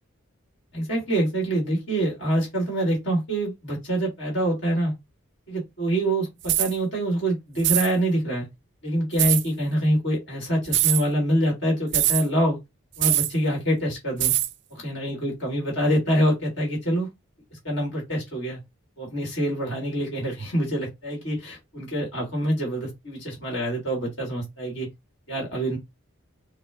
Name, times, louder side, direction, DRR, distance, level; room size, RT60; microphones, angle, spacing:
voice 1, 0.7-4.9 5.5-8.5 8.8-12.6 13.0-14.3 14.7-17.1 17.6-18.6 19.0-24.9 25.3-25.8, right 1 dB, 55° left, 2.3 m, -25 dB
sound 1, 6.4-6.7 7.6-7.9 9.2-9.4 10.7-11.0 11.9-12.2 13.0-13.3 14.2-14.5, right 14 dB, 55° right, 0.4 m, -22 dB
4.8 x 2.4 x 3.5 m
head